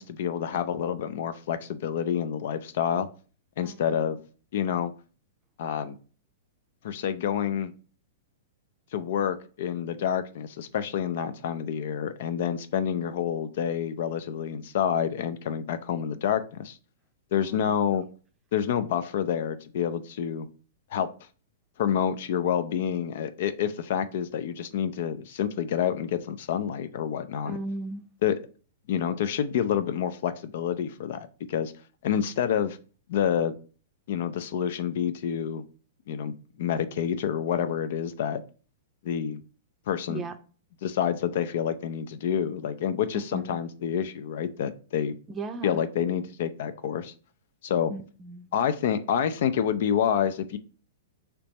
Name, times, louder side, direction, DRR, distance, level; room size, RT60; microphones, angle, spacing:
voice 1, 0.0-3.1 3.6-4.2 4.5-4.9 5.6-5.9 6.8-7.7 8.9-16.8 17.3-18.0 18.5-20.5 20.9-21.1 21.8-27.6 28.2-28.4 28.9-31.7 32.0-32.8 33.1-33.6 34.1-35.6 36.1-36.3 36.6-38.4 39.0-39.4 39.9-40.2 40.8-45.1 45.6-47.1 47.6-47.9 48.5-50.6, left 8 dB, 60° left, 11 dB, 0.4 m, -28 dB
voice 2, 3.6-4.0 17.3-17.8 27.5-28.0 40.1-40.4 43.1-43.6 45.3-45.8 47.9-48.5, right 2 dB, 20° right, 7 dB, 0.5 m, -37 dB
3.4 x 2.9 x 4.0 m, 0.38 s
figure-of-eight pair, 110°, 0 cm